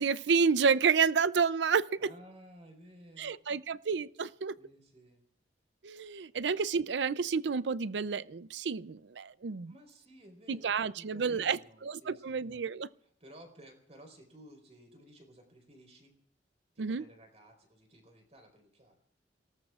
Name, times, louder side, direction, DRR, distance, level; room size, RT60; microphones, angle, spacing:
voice 1, 0.0-1.9 3.2-4.5 5.8-9.7 10.5-12.9 16.8-17.0, right 5 dB, 80° right, 0.5 m, -30 dB
voice 2, 2.0-3.4 4.6-5.2 9.7-12.6 13.2-16.1 16.7-19.0, right 1 dB, 35° right, 4.2 m, -55 dB
29.0 x 18.5 x 2.4 m
head